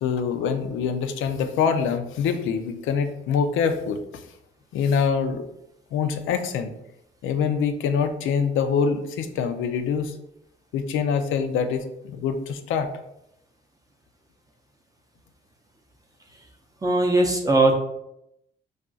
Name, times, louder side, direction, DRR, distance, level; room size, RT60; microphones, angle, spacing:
voice 1, 0.0-4.0 4.7-5.4 5.9-6.7 7.2-10.1 10.7-12.9, left 6 dB, 80° left, 8 dB, 0.4 m, -25 dB
voice 2, 16.8-17.7, right 2 dB, 20° right, 1 dB, 0.5 m, -19 dB
2.4 x 2.3 x 3.8 m, 0.82 s
cardioid pair, 90°, 20 cm